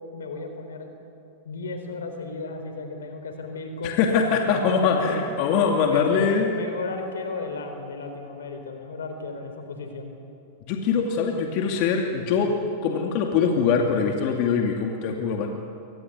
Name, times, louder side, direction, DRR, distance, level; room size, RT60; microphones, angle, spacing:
voice 1, 0.1-0.9 1.4-5.2 5.8-10.1, left 4 dB, 85° left, 6 dB, 4.0 m, -34 dB
voice 2, 3.8-6.5 10.7-12.5 12.8-15.5, left 6 dB, 55° left, 2 dB, 2.5 m, -23 dB
23.5 x 19.5 x 9.5 m, 2.6 s
hypercardioid pair, 110°, 0 cm